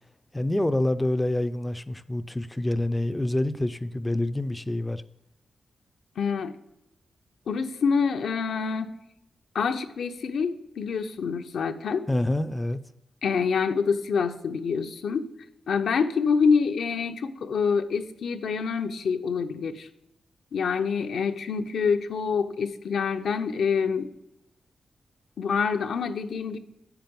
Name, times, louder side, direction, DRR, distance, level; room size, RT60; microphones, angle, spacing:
voice 1, 0.3-5.0 12.1-12.8, left 1 dB, 10° left, 0.4 m, -27 dB
voice 2, 6.2-6.5 7.5-8.9 9.5-12.1 13.2-15.3 15.7-19.9 20.5-24.1 25.4-26.6, left 5 dB, 70° left, 0.7 m, -26 dB
8.6 x 5.9 x 5.3 m
wide cardioid pair, 130°, 0 cm